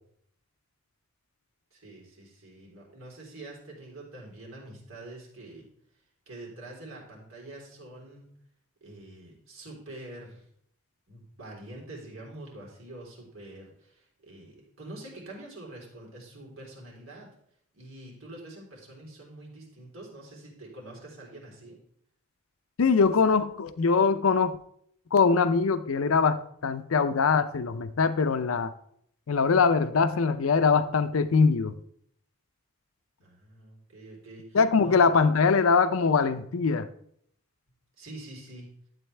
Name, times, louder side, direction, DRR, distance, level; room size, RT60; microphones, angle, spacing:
voice 1, 1.7-5.7 6.3-8.3 8.8-10.5 11.1-17.3 17.7-21.8 33.2-35.0 38.0-38.7, right 1 dB, 80° right, -2 dB, 3.6 m, -45 dB
voice 2, 22.8-24.6 25.1-28.7 29.3-31.8 34.5-36.9, left 5 dB, 85° left, 12 dB, 0.5 m, -22 dB
12.5 x 7.9 x 3.3 m, 0.68 s
head